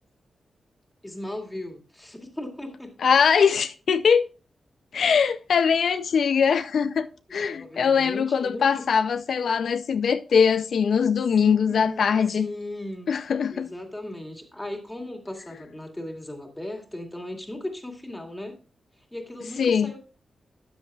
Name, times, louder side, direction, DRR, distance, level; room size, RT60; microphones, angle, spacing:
voice 1, 1.0-2.9 7.4-8.9 11.4-13.1 13.5-18.6 19.1-20.0, left 1 dB, 10° left, 2.1 m, -37 dB
voice 2, 3.0-4.2 4.9-12.5 13.1-13.7 19.6-19.9, left 6 dB, 70° left, 0.4 m, -22 dB
13.0 x 10.0 x 2.3 m
wide cardioid pair, 165°, 0 cm